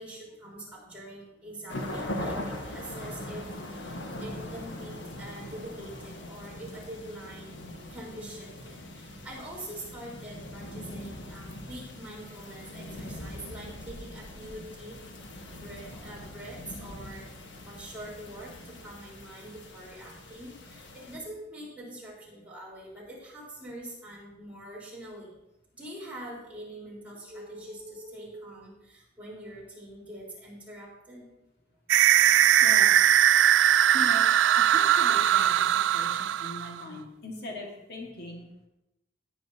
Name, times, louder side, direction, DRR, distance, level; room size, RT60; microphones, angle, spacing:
voice 1, 0.0-15.0 15.4-25.4 25.7-31.3, right 1 dB, 10° right, -6 dB, 4.2 m, -44 dB
sound 1, 1.7-21.2, left 1 dB, 85° left, 1.4 m, -41 dB
sound 2, 31.9-36.8, right 11 dB, 85° right, 0.3 m, -20 dB
voice 2, 32.6-33.0 33.9-38.5, left 1 dB, 60° left, -1 dB, 1.8 m, -40 dB
17.5 x 9.1 x 2.8 m, 0.90 s
head